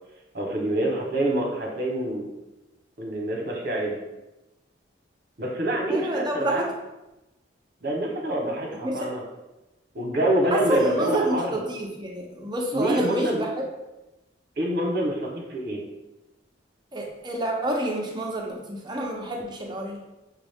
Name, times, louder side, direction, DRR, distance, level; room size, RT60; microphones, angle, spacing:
voice 1, 0.3-2.3 3.0-3.9 5.4-6.6 7.8-9.2 9.9-11.6 12.7-13.4 14.6-15.8, right 1 dB, 55° right, 0 dB, 0.9 m, -26 dB
voice 2, 5.9-6.7 8.7-9.1 10.5-13.6 16.9-20.0, right 1 dB, 25° right, 0 dB, 0.6 m, -28 dB
5.9 x 2.4 x 3.5 m, 1.0 s
head